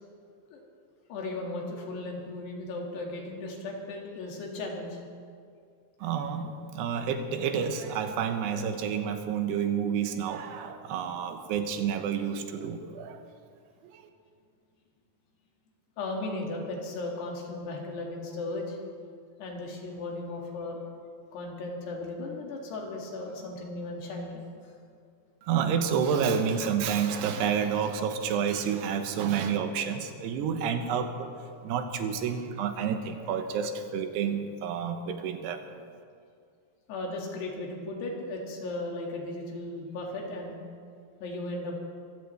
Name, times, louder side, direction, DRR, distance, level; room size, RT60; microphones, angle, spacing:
voice 1, 1.1-5.0 16.0-18.8 19.4-20.8 21.3-24.7 36.9-40.6 41.2-41.8, left 2 dB, 75° left, -1 dB, 4.2 m, -36 dB
voice 2, 6.0-13.2 13.8-14.0 25.4-35.7, right 7 dB, 80° right, 7 dB, 3.0 m, -29 dB
24.0 x 15.5 x 3.3 m, 2.2 s
omnidirectional pair, 4.8 m